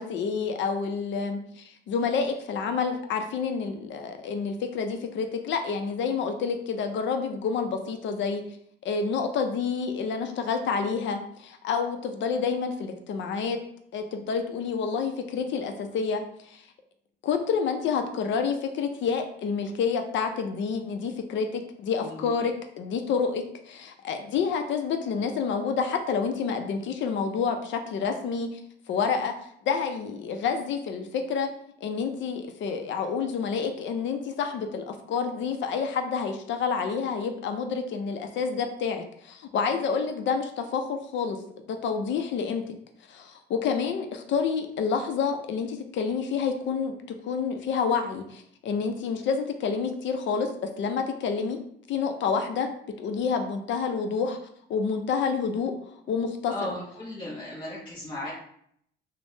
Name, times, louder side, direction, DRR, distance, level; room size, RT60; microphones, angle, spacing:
voice 1, 0.0-8.4 8.8-13.6 13.9-16.6 17.2-28.6 28.9-29.3 29.6-31.5 31.8-41.4 41.7-42.6 43.1-46.9 47.2-50.5 50.8-51.6 51.9-52.7 53.0-54.4 54.7-55.7 56.1-56.7, left 5 dB, 70° left, 6 dB, 0.5 m, -28 dB
voice 2, 22.0-22.3 56.5-58.3, left 1 dB, 25° left, -6 dB, 0.7 m, -36 dB
3.3 x 2.0 x 2.7 m, 0.69 s
cardioid pair, 90°, 20 cm